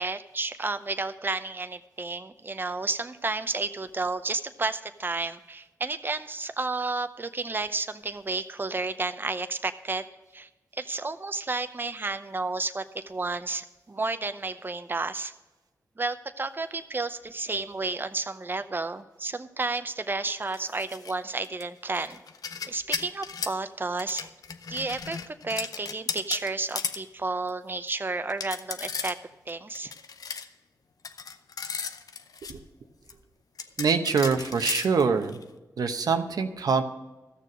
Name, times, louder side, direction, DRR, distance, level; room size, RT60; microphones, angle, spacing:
voice 1, 0.0-10.0 10.3-15.3 16.0-22.2 22.7-24.3 24.7-29.2 29.5-29.9, right 3 dB, 30° right, 10 dB, 0.7 m, -31 dB
sound 1, 20.5-21.1 21.4-23.6 24.0-27.0 27.5-27.6 27.9-28.0 28.3-29.2 29.5-30.5 31.0-32.5 33.1-33.2 33.6-35.4, left 5 dB, 70° left, 0.7 m, -35 dB
voice 2, 33.8-35.4 35.8-36.8, right 5 dB, 80° right, 7 dB, 0.9 m, -24 dB
13.5 x 6.8 x 6.2 m, 1.1 s
cardioid pair, 45°, 6 cm